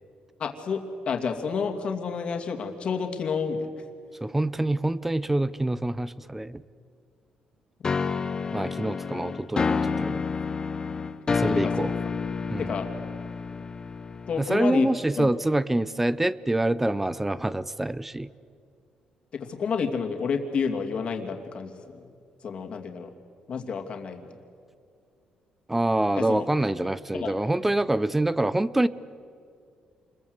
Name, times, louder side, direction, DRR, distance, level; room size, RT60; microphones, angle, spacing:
voice 1, 0.4-0.8 1.1-3.7 7.8-7.9 11.5-11.7 12.6-12.9 14.3-14.9 15.2-15.3 19.3-22.1 22.4-23.1 23.5-24.3 26.2-26.4 27.1-27.3, left 6 dB, 50° left, 3 dB, 2.6 m, -30 dB
voice 2, 4.2-6.6 8.5-10.2 11.3-11.9 12.5-12.7 14.4-18.3 25.7-28.9, right 1 dB, 10° right, 18 dB, 0.6 m, -26 dB
sound 1, 7.8-14.7, left 5 dB, 30° left, 0.9 m, -29 dB
28.0 x 22.0 x 8.1 m, 2.3 s
cardioid pair, 130°, 2 cm